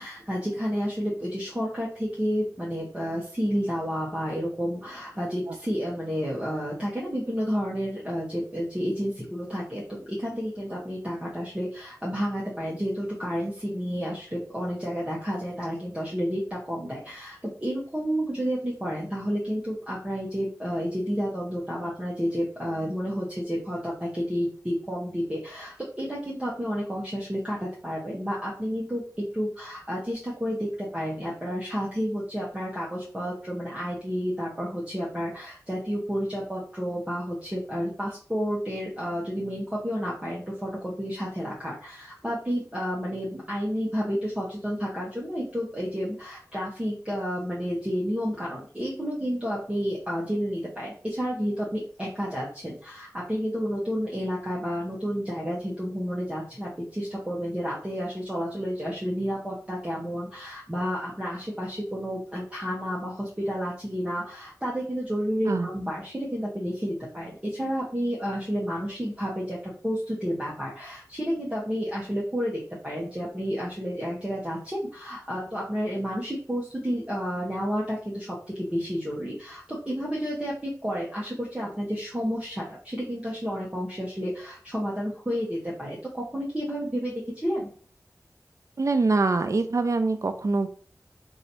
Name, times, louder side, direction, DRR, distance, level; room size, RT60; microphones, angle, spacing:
voice 1, 0.0-87.7, equal, 20° right, -6 dB, 1.1 m, -31 dB
voice 2, 88.8-90.7, right 3 dB, 60° right, 9 dB, 0.5 m, -24 dB
3.0 x 2.7 x 4.2 m, 0.43 s
wide cardioid pair, 60°, 6 cm